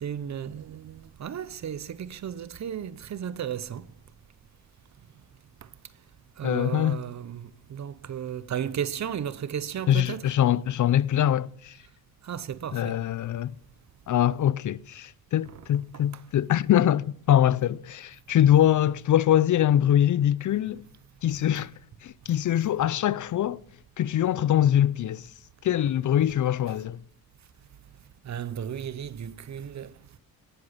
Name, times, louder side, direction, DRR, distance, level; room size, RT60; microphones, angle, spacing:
voice 1, 0.0-3.8 6.4-10.2 12.3-12.8 28.3-29.9, right 9 dB, 50° right, 0.7 m, -34 dB
voice 2, 6.4-7.0 9.9-11.7 12.7-13.5 14.1-20.8 21.2-21.7 22.0-23.6 24.0-25.3 25.6-27.0, left 11 dB, 55° left, 0.5 m, -23 dB
18.0 x 7.8 x 5.7 m
cardioid pair, 80°, 37 cm